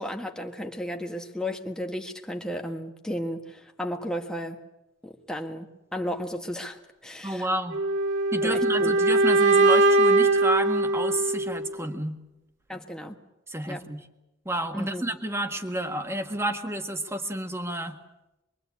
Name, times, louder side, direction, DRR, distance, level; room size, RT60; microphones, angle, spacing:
voice 1, 0.0-4.6 5.0-7.5 8.4-8.9 12.7-13.2 13.7-13.9 14.7-15.0, equal, 5° left, 2 dB, 1.7 m, -34 dB
voice 2, 7.2-7.8 8.3-12.2 13.5-14.0 14.5-18.0, right 1 dB, 15° right, 5 dB, 1.7 m, -30 dB
sound 1, 7.7-11.7, right 2 dB, 70° right, 2.3 m, -21 dB
25.0 x 23.0 x 8.5 m, 0.96 s
head